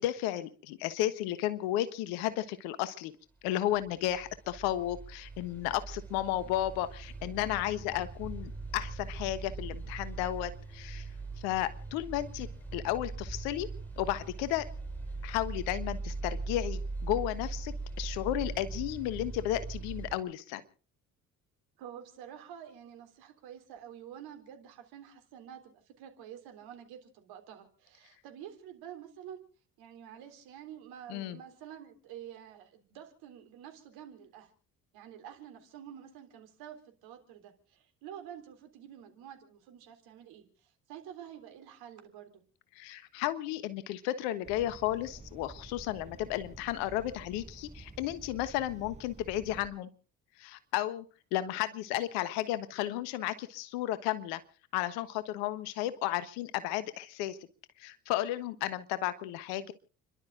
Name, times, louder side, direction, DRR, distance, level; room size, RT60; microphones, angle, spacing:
voice 1, 0.0-3.1 3.4-11.1 11.4-13.7 14.0-14.7 15.2-20.6 31.1-31.4 42.7-49.9 50.4-51.1 51.3-54.4 54.7-57.4 57.8-59.7, left 13 dB, 75° left, 14 dB, 1.4 m, -33 dB
sound 1, 3.7-20.2, right 3 dB, 5° left, 7.5 m, -40 dB
voice 2, 21.8-29.4 29.8-34.5 34.9-42.4, right 9 dB, 70° right, 5 dB, 3.7 m, -49 dB
sound 2, 44.4-49.7, right 3 dB, 15° right, 5.0 m, -50 dB
30.0 x 12.0 x 3.9 m, 0.40 s
hypercardioid pair, 50°, 39 cm